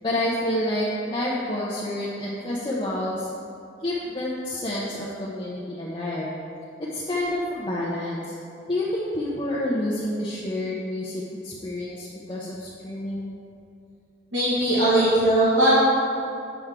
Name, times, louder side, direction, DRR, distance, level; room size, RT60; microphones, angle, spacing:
voice 1, 0.0-3.3 3.8-6.3 6.8-8.4 8.7-13.3, left 1 dB, 25° left, -7 dB, 0.7 m, -28 dB
voice 2, 14.3-15.7, right 1 dB, 70° right, -11 dB, 1.7 m, -19 dB
8.1 x 6.1 x 3.6 m, 2.6 s
head